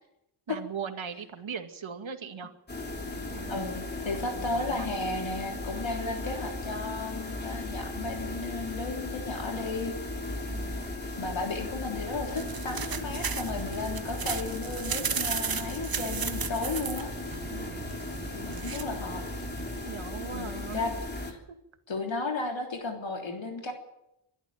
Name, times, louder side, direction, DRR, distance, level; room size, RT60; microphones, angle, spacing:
voice 1, 0.5-2.5 3.3-3.7 4.1-5.2 10.5-10.8 17.5-18.0 18.4-18.7 19.8-20.8 21.5-21.6, right 6 dB, 70° right, 7 dB, 2.3 m, -40 dB
sound 1, 2.7-21.3, left 2 dB, 20° left, 3.3 m, -37 dB
voice 2, 3.5-10.0 11.2-17.1 18.3-19.2 20.3-20.9 21.2-21.4 21.9-23.7, left 3 dB, 65° left, 2 dB, 3.6 m, -34 dB
sound 2, 12.0-19.9, right 6 dB, 45° right, 1.2 m, -36 dB
24.0 x 12.5 x 9.2 m, 0.84 s
wide cardioid pair, 100°, 49 cm